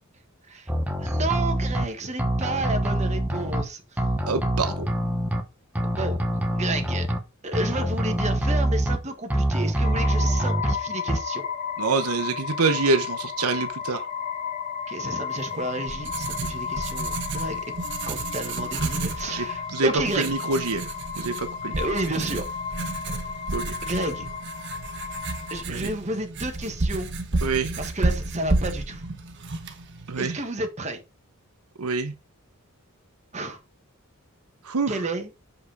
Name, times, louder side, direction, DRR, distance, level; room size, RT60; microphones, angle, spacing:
sound 1, 0.7-1.9 2.2-3.6 4.0-5.4 5.8-7.2 7.5-9.0 9.3-10.7 11.1-11.2, right 1 dB, 5° right, 1.0 m, -25 dB
voice 1, 1.0-3.8 5.9-6.2 6.5-7.1 7.4-11.4 14.9-17.6 18.0-20.3 21.8-22.4 23.8-24.3 25.5-27.1 27.8-29.1 30.2-31.0 33.3-33.6 34.9-35.3, right 2 dB, 30° right, 1.5 m, -31 dB
voice 2, 4.2-4.9 11.8-14.1 19.3-20.8 21.2-21.8 23.5-23.7 25.7-25.9 27.4-27.7 30.1-30.4 31.8-32.1 34.7-34.9, right 3 dB, 85° right, 0.9 m, -26 dB
sound 2, 9.8-25.6, left 7 dB, 40° left, 1.2 m, -33 dB
Writing, 15.5-30.3, right 2 dB, 55° right, 1.2 m, -31 dB
6.5 x 5.4 x 4.7 m
head